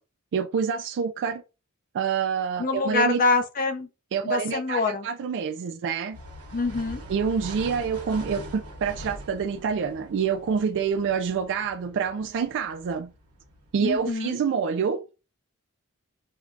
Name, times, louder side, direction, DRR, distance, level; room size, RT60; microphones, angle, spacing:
voice 1, 0.3-1.4 1.9-3.2 4.1-6.2 7.1-13.1 13.7-15.0, right 6 dB, 55° right, 0.3 m, -27 dB
voice 2, 2.6-3.9 4.2-5.1 6.5-7.0 13.8-14.4, left 3 dB, 40° left, 0.5 m, -25 dB
sound 1, 6.1-14.1, right 1 dB, 75° right, 1.0 m, -42 dB
4.5 x 2.3 x 2.4 m
head